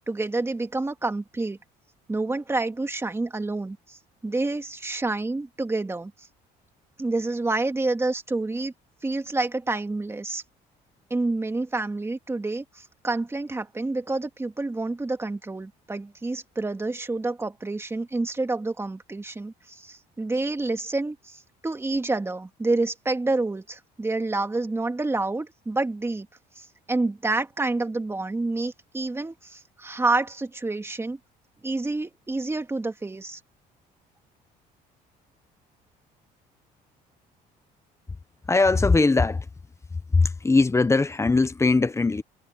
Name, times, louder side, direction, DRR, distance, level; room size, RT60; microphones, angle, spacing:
voice 1, 0.1-1.6 2.1-6.1 7.0-8.7 9.0-10.4 11.1-26.3 26.6-31.2 31.6-33.4, right 2 dB, 15° right, 2.1 m, -28 dB
voice 2, 38.5-39.5 39.9-42.2, left 3 dB, 15° left, 1.1 m, -20 dB
cardioid pair, 110°, 17 cm